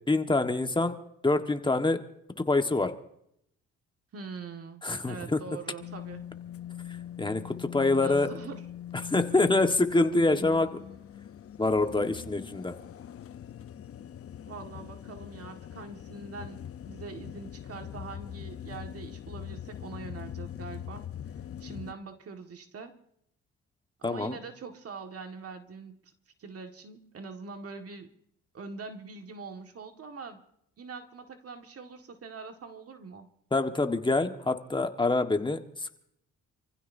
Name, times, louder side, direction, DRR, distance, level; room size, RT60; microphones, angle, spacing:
voice 1, 0.1-0.9 1.2-2.0 2.4-2.9 4.8-5.4 7.2-8.3 9.1-10.8 11.6-12.7 24.0-24.4 33.5-36.0, left 2 dB, 15° left, 6 dB, 1.5 m, -26 dB
voice 2, 4.1-4.8 5.1-6.2 8.0-8.7 14.5-21.1 21.6-22.9 24.0-26.1 26.4-28.1 28.5-30.4 30.8-33.3, right 4 dB, 50° right, 5 dB, 1.9 m, -43 dB
sound 1, 5.8-21.9, left 10 dB, 50° left, 0.8 m, -42 dB
28.5 x 15.5 x 2.7 m, 0.74 s
cardioid pair, 90°, 30 cm